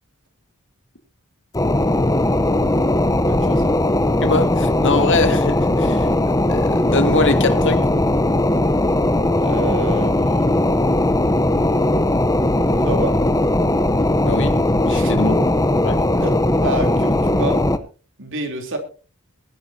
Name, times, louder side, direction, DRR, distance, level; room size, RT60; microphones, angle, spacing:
sound 1, 1.5-17.8, left 1 dB, 15° left, 0.8 m, -18 dB
voice 1, 3.2-3.7 9.3-10.6 12.8-13.2 14.9-15.2 16.1-17.6 18.2-18.8, right 2 dB, 60° right, 3.5 m, -29 dB
voice 2, 4.2-7.9 14.2-14.6 14.9-15.4 15.8-16.0, left 3 dB, 55° left, 2.3 m, -23 dB
22.5 x 11.5 x 2.8 m
head